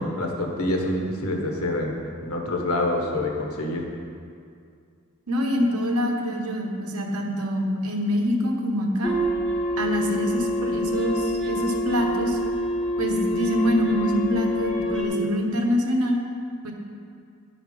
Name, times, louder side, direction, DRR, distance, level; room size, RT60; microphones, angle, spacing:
voice 1, 0.0-2.0 2.2-3.8, left 1 dB, 75° left, 1 dB, 1.3 m, -26 dB
voice 2, 5.3-9.1 9.8-12.4 13.0-16.2 16.6-16.7, equal, 80° right, 2 dB, 1.1 m, -25 dB
sound 1, 9.0-15.0, equal, 5° left, 1.2 m, -26 dB
10.0 x 5.8 x 5.2 m, 2.3 s
head